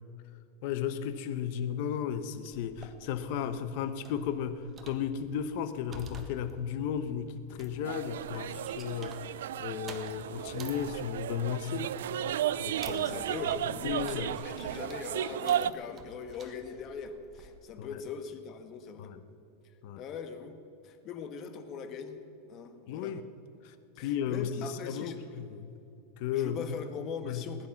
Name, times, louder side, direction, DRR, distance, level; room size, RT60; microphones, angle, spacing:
voice 1, 0.6-11.9 12.6-14.3 17.8-18.0 19.0-19.2 19.8-20.0 22.9-23.2 23.6-24.5 24.8-25.8 26.2-26.7 27.2-27.4, left 8 dB, 55° left, 11 dB, 1.0 m, -35 dB
sound 1, 2.5-17.6, right 2 dB, 25° right, 1.4 m, -52 dB
sound 2, 7.8-15.7, right 11 dB, 90° right, 0.4 m, -34 dB
voice 2, 12.7-19.1 20.0-20.6 20.8-22.2 22.5-23.2 23.9-25.2 26.3-27.7, left 6 dB, 35° left, 8 dB, 1.3 m, -41 dB
20.0 x 10.5 x 5.9 m, 2.9 s
supercardioid pair, 145°, 0 cm